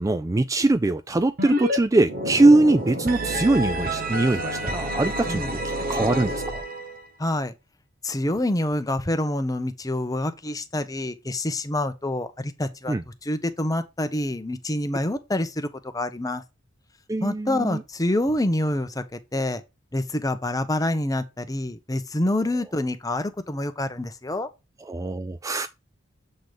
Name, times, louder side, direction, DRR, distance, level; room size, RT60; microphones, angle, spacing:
voice 1, 0.0-5.6 5.9-6.6 12.9-13.0 17.1-17.8 24.9-25.7, right 2 dB, 15° right, 0.3 m, -22 dB
sound 1, 1.4-1.8 2.0-7.0, equal, 45° right, 1.2 m, -28 dB
voice 2, 7.2-7.5 8.0-12.9 13.2-15.7 15.9-16.4 17.2-19.6 19.9-24.5, left 1 dB, 20° left, 0.9 m, -27 dB
7.8 x 4.0 x 4.9 m
head